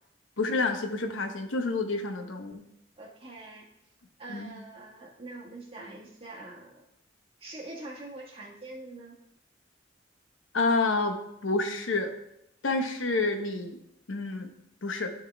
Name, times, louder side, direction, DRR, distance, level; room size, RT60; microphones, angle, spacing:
voice 1, 0.4-2.6 4.3-4.5 10.5-12.1 12.6-13.8 14.1-14.5 14.8-15.1, left 3 dB, 90° left, 6 dB, 0.9 m, -29 dB
voice 2, 3.0-3.7 4.2-6.8 7.4-9.1, right 2 dB, 30° right, -3 dB, 1.6 m, -44 dB
12.0 x 4.5 x 3.4 m, 0.80 s
head